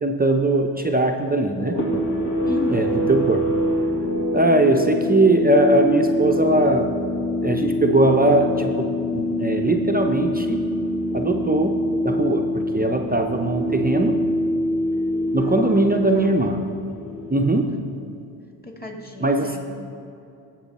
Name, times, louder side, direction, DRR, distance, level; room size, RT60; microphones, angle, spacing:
voice 1, 0.0-1.8 2.7-3.5 4.3-6.9 7.4-10.7 11.1-11.8 12.0-14.2 15.3-16.6 17.3-17.8 19.2-19.6, right 2 dB, 20° right, 3 dB, 0.6 m, -20 dB
sound 1, 1.6-17.9, left 1 dB, 55° left, 2.5 m, -25 dB
voice 2, 2.4-3.0 15.4-15.8 16.1-16.4 18.6-19.6, left 1 dB, 20° left, 2 dB, 1.9 m, -33 dB
16.5 x 6.2 x 4.2 m, 2.7 s
cardioid pair, 70°, 47 cm